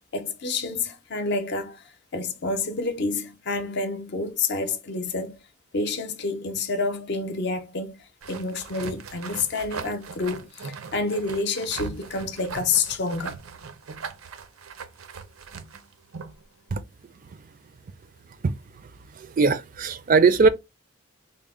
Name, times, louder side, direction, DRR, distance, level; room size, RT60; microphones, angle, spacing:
voice 1, 0.1-1.8 2.1-5.4 5.7-13.4, left 3 dB, 55° left, 0.6 m, -28 dB
sound 1, 8.2-16.4, right 5 dB, 90° right, 0.6 m, -39 dB
voice 2, 19.1-20.5, right 4 dB, 40° right, 0.4 m, -20 dB
4.0 x 2.0 x 3.5 m
head